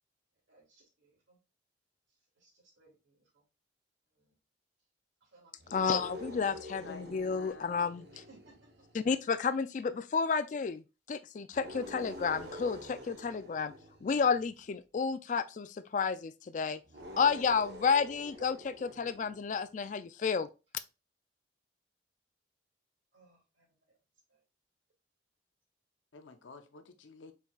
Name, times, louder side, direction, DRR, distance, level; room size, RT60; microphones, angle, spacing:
voice 1, 0.5-1.4 2.4-3.3 4.2-4.4 5.2-6.8 8.1-8.7 23.1-24.0 24.3-24.4, right 3 dB, 90° right, 2.3 m, -64 dB
sound 1, 5.6-9.2 11.5-14.6 16.8-19.6, equal, 60° right, 1.0 m, -47 dB
voice 2, 5.7-8.0 8.9-10.8 11.1-13.7 14.0-16.8 17.2-20.5, left 5 dB, 40° left, 0.3 m, -31 dB
voice 3, 6.8-8.2 26.1-27.3, left 4 dB, 85° left, 0.7 m, -51 dB
4.6 x 4.4 x 2.3 m
head